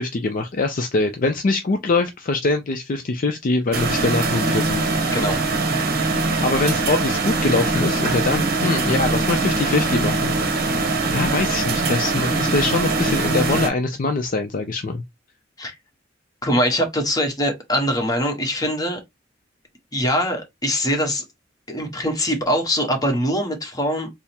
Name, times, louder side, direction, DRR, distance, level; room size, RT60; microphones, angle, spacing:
voice 1, 0.0-4.8 6.4-10.3 11.1-15.0, left 3 dB, 45° left, 0.5 m, -23 dB
sound 1, 3.7-13.7, right 3 dB, 50° right, 0.8 m, -22 dB
voice 2, 16.4-19.0 19.9-21.2 21.7-24.1, equal, 20° left, 1.0 m, -22 dB
3.5 x 2.0 x 4.2 m
head